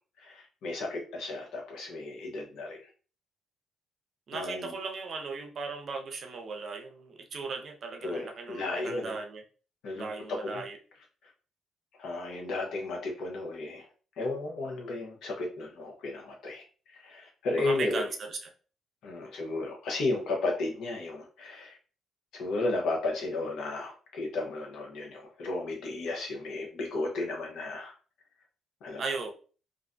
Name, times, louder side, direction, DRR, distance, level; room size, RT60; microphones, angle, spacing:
voice 1, 0.2-2.8 4.3-4.7 8.0-9.2 9.8-10.6 12.0-13.9 14.2-16.6 17.0-18.0 19.0-21.8 22.3-27.9 28.8-29.0, left 2 dB, 75° left, 1 dB, 0.8 m, -34 dB
voice 2, 4.3-9.4 9.9-10.8 17.5-18.5 29.0-29.3, right 4 dB, 55° right, 4 dB, 0.5 m, -37 dB
2.5 x 2.1 x 2.5 m, 0.38 s
cardioid pair, 90°, 0 cm